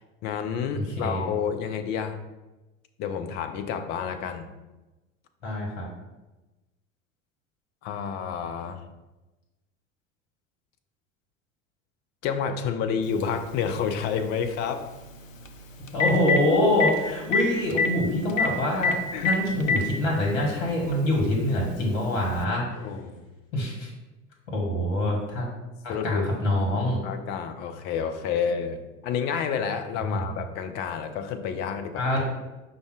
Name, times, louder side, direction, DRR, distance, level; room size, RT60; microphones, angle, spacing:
voice 1, 0.2-2.2 3.0-4.5 7.8-8.8 12.2-14.9 19.1-19.3 22.8-23.3 25.9-26.3 27.0-32.1, left 7 dB, 30° left, 7 dB, 0.4 m, -29 dB
voice 2, 0.7-1.2 5.4-5.9 15.8-18.9 19.2-22.6 23.5-23.9 24.5-25.5 25.8-27.0 30.1-30.2 31.9-32.2, left 1 dB, 60° left, -2 dB, 1.3 m, -25 dB
Telephone, 13.2-13.3 15.5-15.6 15.9-16.4 16.8-16.9 17.3-17.4 17.7-17.9 18.4-18.5 18.8-18.9 19.3-19.8 20.8-20.9 22.4-22.5, left 4 dB, 80° left, 0.5 m, -22 dB
5.2 x 2.2 x 4.6 m, 1.1 s
figure-of-eight pair, 75°, 38 cm